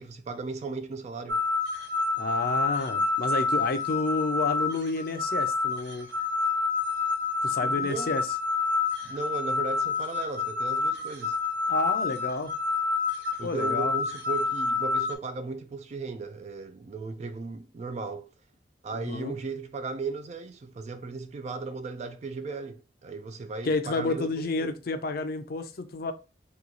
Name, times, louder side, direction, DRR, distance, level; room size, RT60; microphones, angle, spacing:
voice 1, 0.0-1.4 7.6-8.2 9.0-11.4 13.4-18.3 18.8-24.8, right 4 dB, 40° right, 0.3 m, -36 dB
sound 1, 1.3-15.1, left 4 dB, 70° right, 0.8 m, -28 dB
voice 2, 2.2-6.1 7.4-8.3 11.7-12.5 13.4-13.9 18.9-19.3 23.6-26.1, left 3 dB, 55° left, 0.5 m, -30 dB
3.0 x 2.3 x 3.8 m
head